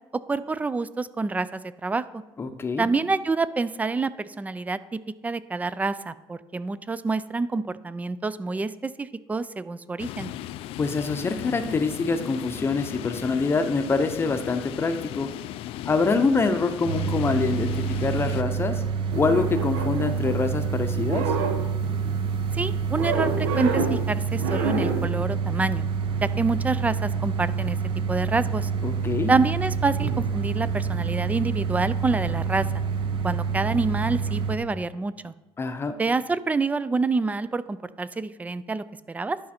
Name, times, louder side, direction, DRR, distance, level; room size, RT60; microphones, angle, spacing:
voice 1, 0.3-2.2 2.8-10.3 22.5-25.9 26.2-27.8 28.1-28.7 29.3-32.7 33.2-35.3 36.0-39.4, right 3 dB, 15° right, 16 dB, 0.3 m, -27 dB
voice 2, 2.4-2.9 10.8-15.3 15.9-17.7 18.0-18.8 19.1-21.2 28.8-29.3 35.6-35.9, left 4 dB, 25° left, 8 dB, 0.7 m, -25 dB
sound 1, 10.0-18.4, left 13 dB, 65° left, 0.4 m, -36 dB
sound 2, 16.8-34.6, right 6 dB, 55° right, 0.9 m, -27 dB
sound 3, 19.1-20.7 20.9-22.2 23.0-24.1 24.4-25.1, right 4 dB, 80° right, 1.2 m, -29 dB
11.0 x 5.1 x 4.3 m, 1.1 s
cardioid pair, 115°, 10 cm